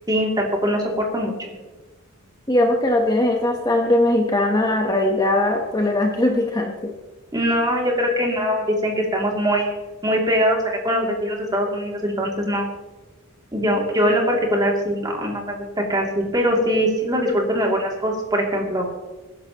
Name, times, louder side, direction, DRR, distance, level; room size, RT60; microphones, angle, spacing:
voice 1, 0.1-1.5 7.3-9.7 10.0-10.6 10.8-12.7 13.5-18.8, equal, 20° right, -1 dB, 2.6 m, -22 dB
voice 2, 2.5-6.9, left 1 dB, 20° left, 2 dB, 1.0 m, -20 dB
22.0 x 10.5 x 3.0 m, 1.2 s
head